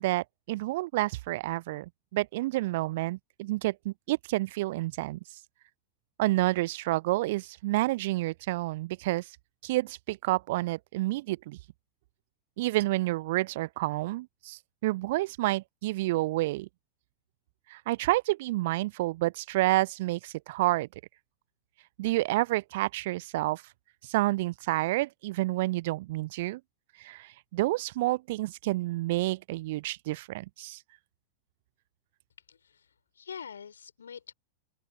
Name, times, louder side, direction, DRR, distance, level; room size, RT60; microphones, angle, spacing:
voice 1, 0.0-5.2 6.2-9.3 9.6-11.6 12.6-16.7 17.7-20.9 22.0-23.6 24.0-26.6 27.0-30.8, right 18 dB, 50° right, 0.5 m, -29 dB
voice 2, 32.5-34.3, left 7 dB, 70° left, 5.8 m, -45 dB
open air
figure-of-eight pair, 90°, 0 cm